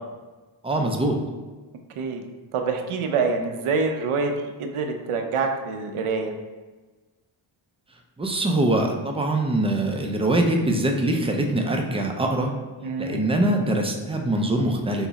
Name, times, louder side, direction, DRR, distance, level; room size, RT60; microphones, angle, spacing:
voice 1, 0.6-1.2 8.2-12.5 13.0-15.1, right 1 dB, 15° right, 2 dB, 0.3 m, -23 dB
voice 2, 2.5-6.3 12.8-13.3, right 4 dB, 80° right, 5 dB, 0.7 m, -26 dB
5.9 x 2.0 x 4.0 m, 1.3 s
wide cardioid pair, 130°, 50 cm